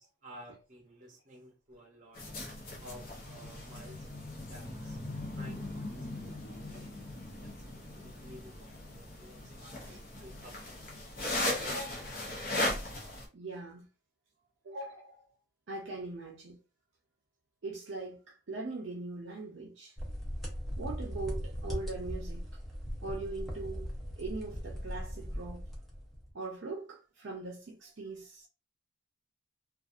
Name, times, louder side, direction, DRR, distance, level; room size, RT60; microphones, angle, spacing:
voice 1, 0.2-2.2 2.8-4.1 4.5-5.0 5.4-7.0 7.4-10.5 10.9-11.1, equal, 40° right, 0.8 m, -53 dB
sound 1, 2.1-13.3, left 1 dB, 45° left, 0.7 m, -38 dB
voice 2, 11.6-12.2 13.3-13.9 14.6-15.2 15.7-16.6 17.6-20.0 20.8-22.5 23.0-25.6 26.3-28.5, right 3 dB, 60° right, 0.5 m, -41 dB
sound 2, 20.0-26.3, equal, ahead, 0.6 m, -39 dB
2.6 x 2.3 x 2.4 m
head